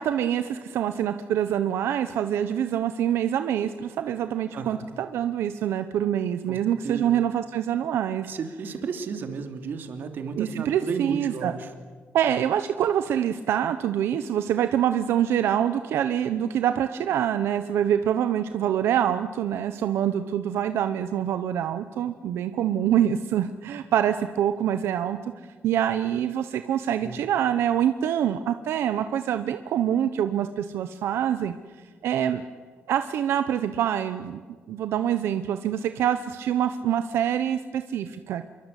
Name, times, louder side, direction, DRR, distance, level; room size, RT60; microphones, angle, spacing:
voice 1, 0.0-8.3 10.3-11.5 12.1-25.2 25.6-31.6 32.0-32.4 32.9-34.4 34.7-38.4, right 10 dB, 85° right, 10 dB, 1.0 m, -25 dB
voice 2, 4.5-4.9 6.5-6.6 6.8-7.1 8.2-11.7 27.0-27.3, right 5 dB, 55° right, 6 dB, 2.9 m, -33 dB
26.5 x 23.0 x 8.4 m, 1.5 s
cardioid pair, 155°, 4 cm